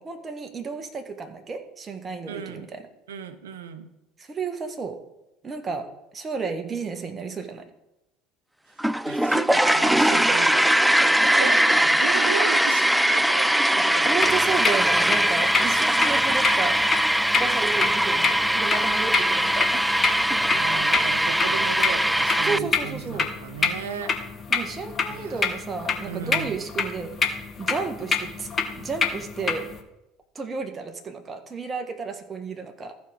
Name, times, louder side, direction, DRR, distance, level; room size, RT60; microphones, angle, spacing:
voice 1, 0.0-2.9 4.2-5.0 5.4-5.9 6.1-7.6 10.1-10.4 10.6-11.5 14.0-16.8 17.4-20.4 22.4-23.3 24.5-27.1 27.6-28.5 28.7-29.7 30.3-32.9, right 4 dB, 30° right, 6 dB, 1.5 m, -32 dB
voice 2, 2.3-2.7 3.1-3.9 9.1-10.6 11.0-14.1 20.5-24.1 25.1-25.6 26.0-26.6, right 7 dB, 80° right, 11 dB, 0.8 m, -35 dB
sound 1, 8.8-22.6, right 1 dB, 5° right, 0.3 m, -21 dB
sound 2, 14.2-29.8, left 5 dB, 30° left, 1.3 m, -28 dB
14.0 x 5.1 x 4.8 m, 0.90 s
hypercardioid pair, 70°, 0 cm